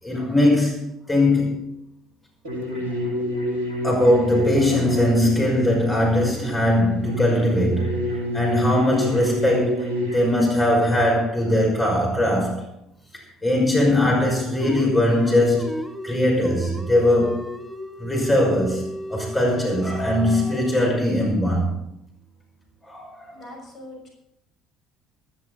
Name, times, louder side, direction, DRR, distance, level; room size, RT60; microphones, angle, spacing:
voice 1, 0.0-1.7 3.8-8.0 8.3-12.6 13.4-17.5 18.0-21.7 22.8-23.4, left 1 dB, 20° left, -1 dB, 5.8 m, -20 dB
sound 1, 2.4-10.4, left 1 dB, 75° right, 3.9 m, -28 dB
sound 2, 14.6-20.9, equal, ahead, 1.9 m, -35 dB
voice 2, 23.3-24.1, left 1 dB, 45° left, 0 dB, 6.2 m, -41 dB
16.0 x 13.5 x 4.1 m, 0.79 s
figure-of-eight pair, 55°, 0 cm